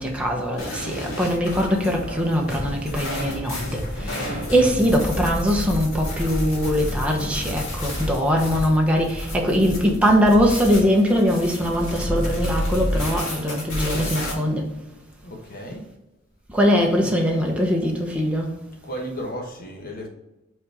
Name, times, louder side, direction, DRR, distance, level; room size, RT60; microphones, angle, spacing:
voice 1, 0.0-4.2 4.5-14.6 16.5-18.5, equal, 5° right, 1.1 m, -21 dB
sound 1, 0.6-14.3, left 1 dB, 85° left, 2.0 m, -30 dB
voice 2, 15.2-15.9 18.8-20.1, equal, 45° left, 1.4 m, -34 dB
5.3 x 4.2 x 5.0 m
head